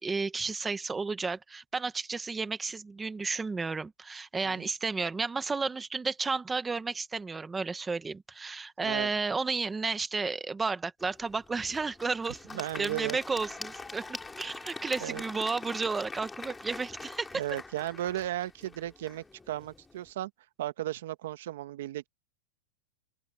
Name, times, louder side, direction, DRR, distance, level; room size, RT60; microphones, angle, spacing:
voice 1, 0.0-17.4, right 4 dB, 10° right, 0.9 m, -32 dB
Applause / Crowd, 11.0-20.1, left 3 dB, 5° left, 2.3 m, -44 dB
voice 2, 12.5-13.2 15.0-15.2 17.3-20.3 20.6-22.1, right 13 dB, 65° right, 1.0 m, -35 dB
open air
supercardioid pair, 170°, 0 cm